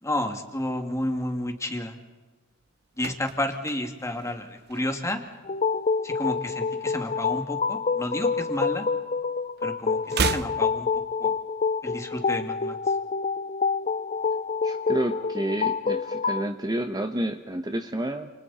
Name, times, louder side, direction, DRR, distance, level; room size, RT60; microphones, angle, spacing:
voice 1, 0.0-2.0 3.0-5.2 6.0-8.9 9.6-10.9 11.2-11.3 11.8-12.8, left 1 dB, 15° left, 4 dB, 2.6 m, -31 dB
sound 1, 2.6-5.3 5.6-5.9 6.2-7.6 7.9-9.3 9.5-11.6 11.9-12.0, right 5 dB, 50° right, 0.8 m, -34 dB
sound 2, 5.4-16.5, left 5 dB, 35° left, 0.7 m, -27 dB
voice 2, 14.6-18.3, right 1 dB, 20° right, 6 dB, 1.1 m, -29 dB
30.0 x 29.0 x 4.4 m, 1.2 s
head